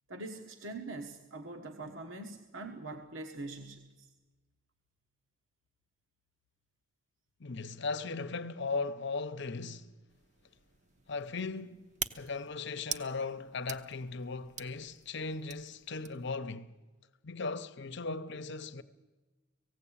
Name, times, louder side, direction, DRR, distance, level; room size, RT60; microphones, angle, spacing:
voice 1, 0.1-4.1, right 2 dB, 70° right, 1.3 m, -43 dB
voice 2, 7.4-9.9 11.1-11.9 12.1-16.7 17.2-18.8, left 4 dB, 60° left, 0.9 m, -37 dB
sound 1, 10.1-16.4, right 7 dB, 35° right, 0.8 m, -45 dB
18.5 x 16.0 x 8.7 m
head